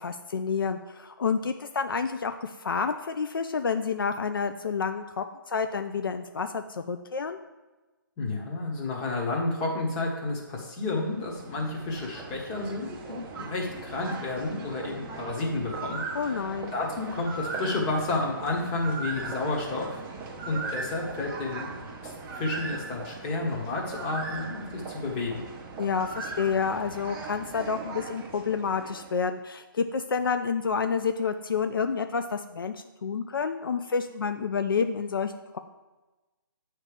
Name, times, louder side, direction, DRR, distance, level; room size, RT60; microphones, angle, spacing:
voice 1, 0.0-7.4 16.1-16.7 25.8-32.7 33.0-35.6, left 5 dB, 75° left, 8 dB, 0.4 m, -29 dB
voice 2, 8.2-16.2 16.7-20.0 20.4-21.7 22.0-25.4, left 2 dB, 25° left, -1 dB, 1.2 m, -31 dB
sound 1, 10.9-29.3, right 4 dB, 15° right, 0.6 m, -39 dB
8.3 x 3.2 x 4.9 m, 1.2 s
figure-of-eight pair, 145°, 12 cm